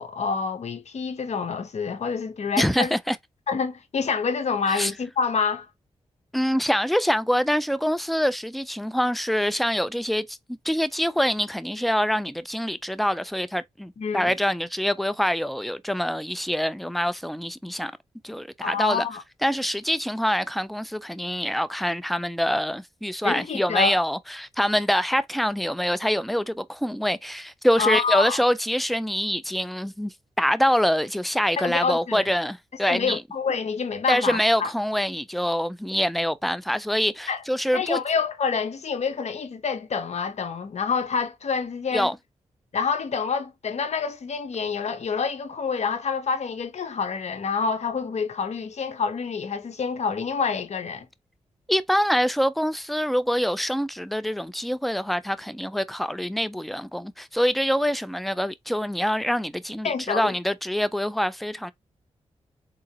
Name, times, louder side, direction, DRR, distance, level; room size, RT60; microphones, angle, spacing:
voice 1, 0.0-2.9 3.5-5.7 14.0-14.3 18.6-19.2 23.2-24.0 27.8-28.4 31.6-32.2 32.9-34.7 37.3-37.4 37.7-42.1 42.7-51.1 59.8-60.3, left 5 dB, 65° left, 1.0 m, -27 dB
voice 2, 2.6-3.2 4.7-4.9 6.3-10.4 10.6-17.9 18.2-19.1 19.4-33.2 34.1-38.0 41.9-42.2 51.7-61.7, equal, ahead, 0.4 m, -25 dB
3.8 x 2.9 x 2.9 m
cardioid pair, 55°, 12 cm